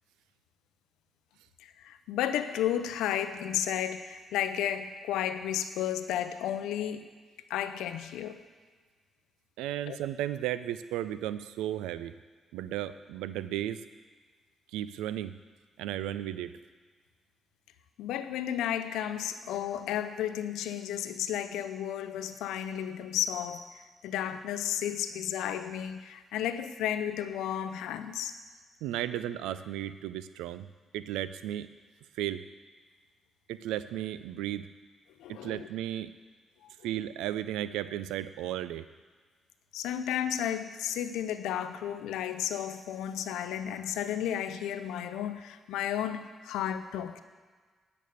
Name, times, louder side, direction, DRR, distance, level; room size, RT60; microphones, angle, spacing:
voice 1, 1.6-7.1 7.5-8.4 9.9-10.0 18.0-28.3 29.1-29.2 35.2-35.7 36.6-36.7 39.7-47.2, left 10 dB, 80° left, 11 dB, 0.5 m, -33 dB
voice 2, 9.6-12.1 12.5-13.8 14.7-15.3 15.8-16.6 28.8-30.7 30.9-31.7 32.2-32.4 33.5-34.7 35.3-36.1 36.8-38.9, right 12 dB, 80° right, 14 dB, 0.3 m, -34 dB
9.3 x 5.3 x 7.8 m, 1.5 s
hypercardioid pair, 45°, 0 cm